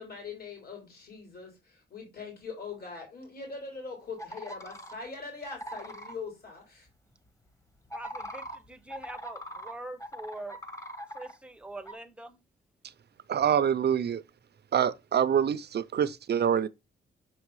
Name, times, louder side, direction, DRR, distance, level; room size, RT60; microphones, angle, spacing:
voice 1, 0.0-6.9, left 4 dB, 50° left, 3.5 m, -42 dB
sound 1, 4.2-4.9 5.5-6.1 7.8-9.7 10.0-11.3 11.8-11.9, equal, 15° left, 1.2 m, -41 dB
voice 2, 7.9-10.6 11.1-12.4, right 2 dB, 5° right, 0.7 m, -43 dB
voice 3, 13.3-14.2 14.7-16.7, right 8 dB, 55° right, 0.6 m, -25 dB
6.1 x 4.9 x 4.7 m
wide cardioid pair, 125°, 20 cm